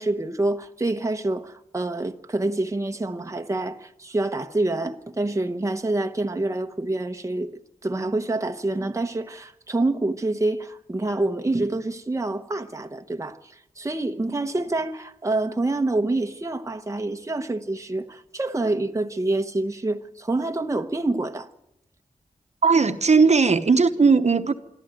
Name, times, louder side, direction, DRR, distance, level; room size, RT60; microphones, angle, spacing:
voice 1, 0.0-7.5 7.8-21.5, right 2 dB, 20° right, 1.0 m, -27 dB
voice 2, 22.6-24.5, right 4 dB, 55° right, 1.0 m, -18 dB
25.5 x 13.0 x 9.1 m
wide cardioid pair, 105°, 14 cm